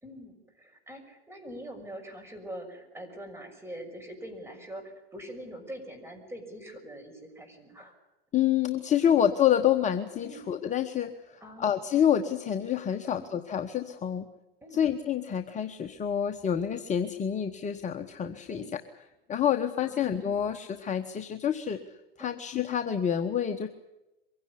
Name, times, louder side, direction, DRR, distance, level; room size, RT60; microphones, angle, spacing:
voice 1, 0.0-7.9 9.0-9.1 10.2-10.5 11.4-11.8 13.1-13.3 14.6-14.8 18.5-18.7 19.8-20.1 22.2-22.4, equal, 10° right, 4 dB, 6.3 m, -44 dB
voice 2, 8.3-14.3 14.7-18.8 19.3-21.8 22.2-23.7, left 9 dB, 25° left, 6 dB, 1.2 m, -28 dB
23.5 x 16.5 x 9.8 m, 1.0 s
hypercardioid pair, 110°, 31 cm